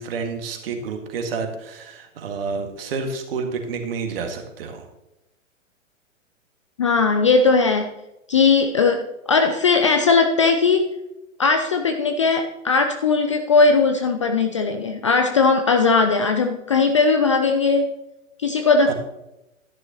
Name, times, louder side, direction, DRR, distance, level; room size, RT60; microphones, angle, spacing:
voice 1, 0.0-4.9 18.8-18.9, right 5 dB, 45° right, 4 dB, 1.9 m, -29 dB
voice 2, 6.8-7.9 8.3-11.0 11.4-18.0 18.4-18.9, left 4 dB, 25° left, 6 dB, 0.4 m, -18 dB
12.5 x 10.5 x 2.9 m, 0.94 s
figure-of-eight pair, 110°, 39 cm